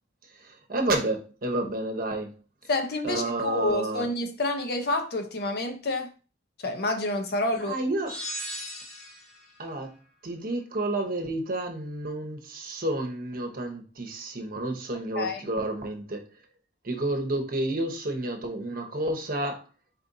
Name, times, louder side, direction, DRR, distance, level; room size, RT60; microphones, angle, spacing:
voice 1, 0.4-2.3 3.0-4.1 7.5-8.1 9.6-9.9 10.2-16.3 16.8-19.6, right 2 dB, 50° right, 0.9 m, -30 dB
voice 2, 2.7-6.1 6.6-7.7 15.2-15.4, left 2 dB, 55° left, 0.7 m, -28 dB
sound 1, 8.1-9.4, equal, ahead, 2.0 m, -37 dB
4.2 x 4.2 x 2.6 m
head